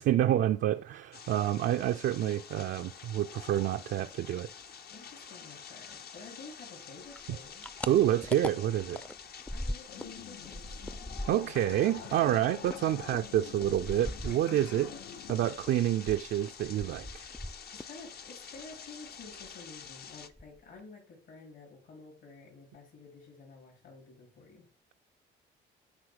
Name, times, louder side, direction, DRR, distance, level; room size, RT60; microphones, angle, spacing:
voice 1, 0.0-4.5 7.9-9.0 11.3-14.9 15.3-17.2, right 12 dB, 70° right, 0.5 m, -28 dB
sound 1, 1.1-20.3, left 7 dB, 55° left, 0.8 m, -48 dB
voice 2, 4.9-7.7 9.5-10.8 14.3-15.0 17.7-24.7, left 4 dB, 70° left, 4.0 m, -51 dB
sound 2, 7.1-10.2 10.4-14.9 15.3-18.0 18.3-19.0 19.3-19.5 19.9-20.0 20.2-20.8, left 1 dB, 5° left, 0.5 m, -41 dB
sound 3, 9.9-15.6, left 9 dB, 85° left, 0.7 m, -49 dB
9.7 x 3.5 x 6.4 m
cardioid pair, 90°, 20 cm